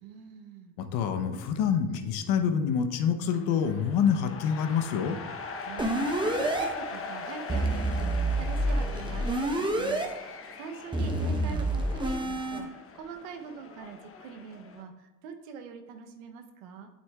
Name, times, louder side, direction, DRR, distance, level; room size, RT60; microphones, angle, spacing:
voice 1, 0.0-0.7 5.6-12.7 12.9-16.9, right 6 dB, 90° right, 6 dB, 0.9 m, -43 dB
voice 2, 0.8-5.2, left 7 dB, 70° left, 7 dB, 0.9 m, -27 dB
sound 1, 3.3-14.8, left 4 dB, 35° left, 0.9 m, -41 dB
sound 2, 5.8-6.7 7.5-10.1 10.9-12.6, right 1 dB, 10° right, 0.9 m, -28 dB
8.9 x 7.0 x 2.4 m, 1.1 s
supercardioid pair, 90°, 40 cm